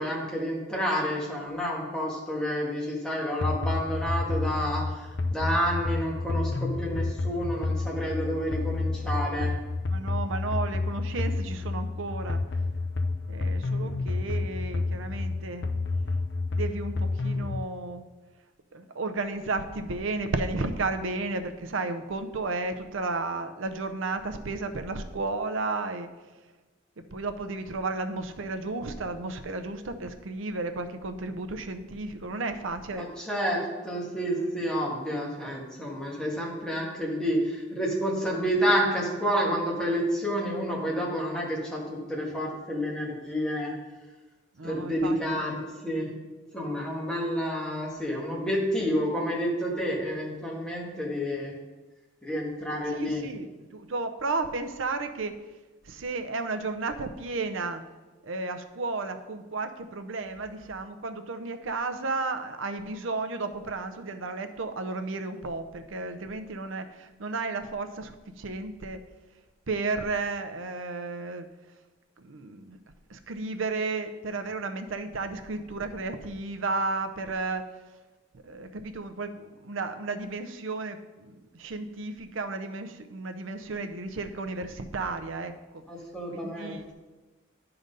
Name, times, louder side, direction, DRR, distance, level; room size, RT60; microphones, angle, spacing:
voice 1, 0.0-9.5 32.9-43.7 44.6-46.1 46.5-51.5 52.2-53.2 85.9-86.9, equal, 5° left, -5 dB, 1.7 m, -29 dB
sound 1, 3.4-17.6, left 3 dB, 65° left, 0.6 m, -30 dB
voice 2, 9.9-12.4 13.3-15.7 16.5-18.0 18.7-26.1 27.1-33.1 44.6-45.2 52.9-53.5 53.7-55.3 55.9-57.8 58.2-68.1 68.4-69.0 69.7-71.5 72.2-72.8 73.1-77.6 78.4-81.3 81.6-85.5 86.3-86.8, right 3 dB, 75° right, 8 dB, 0.6 m, -33 dB
10.5 x 3.9 x 5.4 m, 1.2 s
head